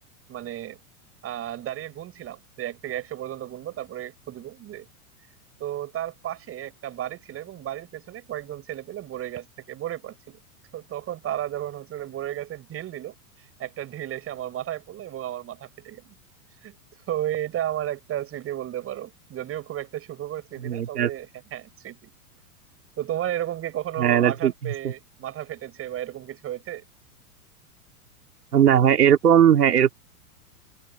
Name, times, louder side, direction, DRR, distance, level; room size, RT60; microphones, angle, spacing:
voice 1, 0.3-0.8 1.2-4.9 5.6-10.4 10.7-13.1 13.6-16.1 16.6-16.8 17.1-22.1 23.0-26.8, right 12 dB, 30° right, 6.3 m, -33 dB
voice 2, 20.6-21.1 24.0-24.9 28.5-29.9, right 9 dB, 90° right, 2.7 m, -19 dB
hypercardioid pair, 120°, 45 cm